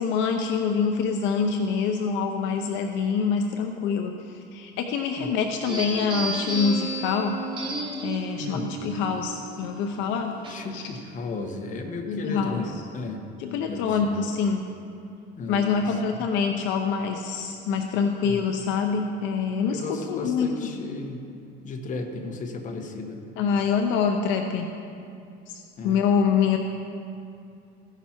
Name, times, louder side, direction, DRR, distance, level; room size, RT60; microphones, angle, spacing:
voice 1, 0.0-4.1 4.5-7.4 8.0-10.3 10.7-10.8 12.1-12.6 13.4-14.6 15.5-20.7 23.4-24.7 25.5-26.6, left 6 dB, 70° left, 4 dB, 0.7 m, -25 dB
sound 1, 5.7-10.9, right 3 dB, 25° right, 1.2 m, -33 dB
voice 2, 8.4-8.8 10.5-13.2 13.7-14.2 15.4-16.3 18.2-18.4 19.7-21.2 21.6-23.2 25.8-26.0, left 3 dB, 40° left, 3 dB, 1.1 m, -34 dB
15.0 x 5.9 x 4.4 m, 2.5 s
cardioid pair, 120°, 20 cm